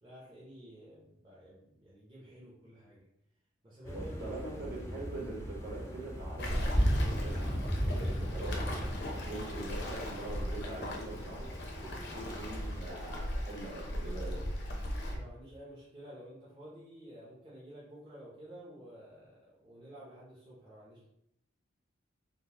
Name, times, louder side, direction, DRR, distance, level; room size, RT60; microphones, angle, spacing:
voice 1, 0.0-3.0 3.6-4.4 15.1-21.0, equal, 25° right, -8 dB, 0.7 m, -51 dB
sound 1, 3.8-12.8, equal, 15° left, 0.5 m, -36 dB
voice 2, 3.9-8.8 9.2-14.4, right 2 dB, 55° right, -5 dB, 1.3 m, -43 dB
Waves surf, 6.4-15.2, left 1 dB, 60° left, 0.6 m, -39 dB
3.7 x 2.0 x 2.9 m, 0.78 s
head